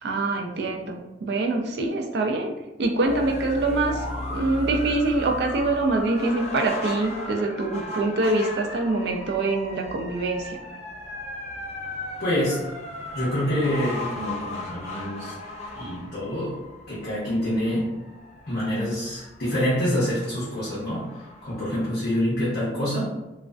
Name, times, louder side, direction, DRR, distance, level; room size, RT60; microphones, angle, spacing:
voice 1, 0.0-2.5 2.8-10.6, right 2 dB, 65° right, 2 dB, 0.3 m, -25 dB
sound 1, 3.0-22.2, left 2 dB, 35° left, 0.5 m, -36 dB
voice 2, 12.2-12.7 13.1-15.3 15.7-16.6 16.9-17.9 18.5-23.1, equal, 70° left, -9 dB, 0.7 m, -26 dB
2.3 x 2.3 x 2.2 m, 1.0 s
head